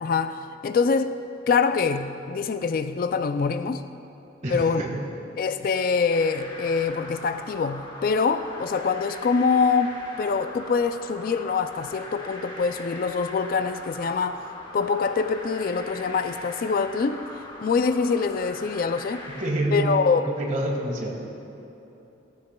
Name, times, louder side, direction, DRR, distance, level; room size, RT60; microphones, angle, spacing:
voice 1, 0.0-1.2 1.5-3.8 4.5-4.8 5.4-14.4 14.7-17.2 17.6-19.3 19.7-20.3, left 5 dB, 45° left, 0.3 m, -24 dB
voice 2, 4.4-5.0 19.3-21.2, right 1 dB, 40° right, 1.6 m, -27 dB
sound 1, 6.1-19.5, left 1 dB, 25° left, 1.4 m, -41 dB
15.0 x 15.0 x 2.3 m
head